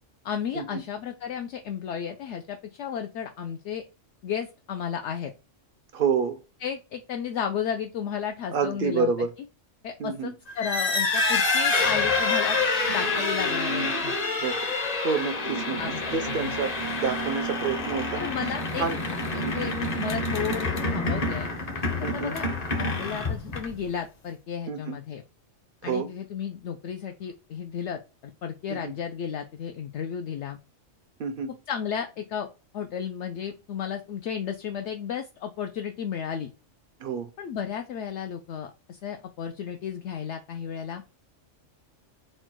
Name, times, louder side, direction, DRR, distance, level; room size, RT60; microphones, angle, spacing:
voice 1, 0.2-3.8 4.2-5.3 6.6-9.1 9.8-12.6 12.9-14.1 15.8-16.0 16.2-16.5 18.2-18.8 19.3-21.5 22.0-22.4 22.8-25.2 25.8-30.6 31.7-32.5 32.7-36.5 37.4-41.0, left 8 dB, 70° left, 0.8 m, -33 dB
voice 2, 5.9-6.4 8.5-9.3 10.0-10.3 14.4-14.6 15.0-15.8 16.1-18.2 18.8-19.0 19.4-19.7 22.0-22.4 24.7-25.0 25.8-26.1 28.7-28.9 31.2-31.5 37.0-37.3, right 5 dB, 65° right, 0.6 m, -28 dB
sound 1, 10.5-23.9, left 3 dB, 35° left, 0.8 m, -27 dB
4.3 x 2.3 x 4.4 m
omnidirectional pair, 1.3 m